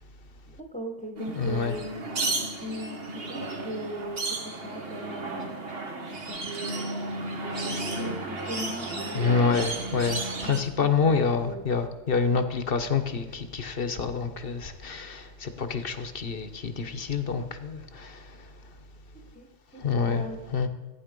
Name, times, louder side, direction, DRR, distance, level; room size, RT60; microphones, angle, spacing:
voice 1, 0.6-1.9 2.5-5.6 6.1-6.9 7.3-9.6 10.4-11.1 11.4-11.6 19.1-20.4, equal, 5° left, 1.3 m, -39 dB
sound 1, 1.2-10.6, right 2 dB, 50° right, 1.6 m, -33 dB
voice 2, 1.3-1.7 9.1-18.8 19.7-20.7, left 5 dB, 50° left, 1.1 m, -27 dB
15.0 x 9.5 x 5.3 m
omnidirectional pair, 1.3 m